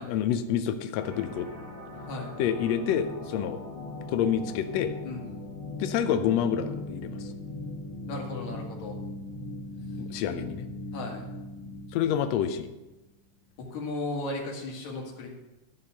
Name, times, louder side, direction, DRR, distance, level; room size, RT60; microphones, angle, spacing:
voice 1, 0.0-1.5 2.4-3.6 4.1-4.9 5.8-7.3 10.0-10.7 11.9-12.7, left 9 dB, 80° left, 8 dB, 1.5 m, -28 dB
sound 1, 1.0-12.8, left 2 dB, 90° right, 4.0 m, -39 dB
voice 2, 2.0-2.4 5.0-5.2 8.1-9.0 10.9-11.3 13.7-15.3, left 2 dB, 65° left, 0 dB, 3.1 m, -35 dB
12.0 x 5.6 x 6.6 m, 1.0 s
omnidirectional pair, 3.7 m